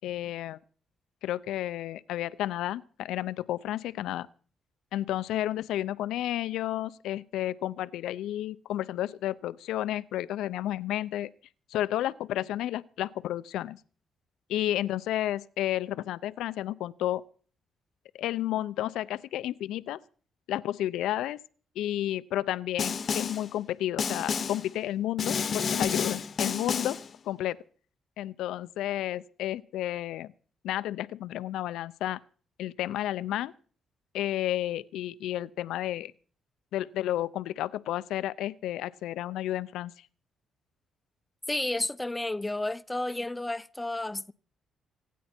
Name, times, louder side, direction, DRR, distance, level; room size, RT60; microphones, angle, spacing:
voice 1, 0.0-0.6 1.2-4.3 4.9-11.3 11.7-13.8 14.5-17.2 18.1-20.0 20.5-21.4 21.8-27.0 27.3-27.6 28.2-30.3 30.6-32.2 32.6-33.5 34.1-36.1 36.7-39.9, left 13 dB, 85° left, 0.6 m, -31 dB
Snare drum, 22.8-23.5 24.0-24.7 25.2-27.1, left 6 dB, 50° left, 1.0 m, -30 dB
voice 2, 41.5-44.3, left 2 dB, 10° left, 0.7 m, -31 dB
26.5 x 9.3 x 4.4 m
cardioid pair, 90°, 0 cm